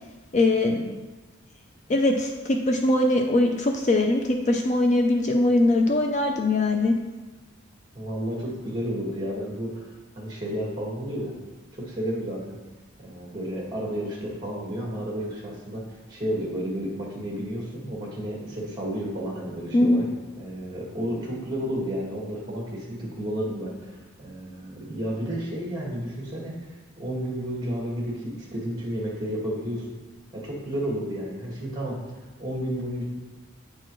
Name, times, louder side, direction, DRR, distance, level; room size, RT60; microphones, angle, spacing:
voice 1, 0.3-1.0 1.9-7.0 19.7-20.0, left 2 dB, 35° left, 3 dB, 0.4 m, -21 dB
voice 2, 7.9-11.3 11.7-12.6 13.0-15.8 16.1-20.0 20.4-26.5 27.0-29.8 30.3-32.0 32.4-33.0, equal, 20° right, -3 dB, 1.6 m, -31 dB
8.5 x 4.4 x 3.0 m, 1.2 s
head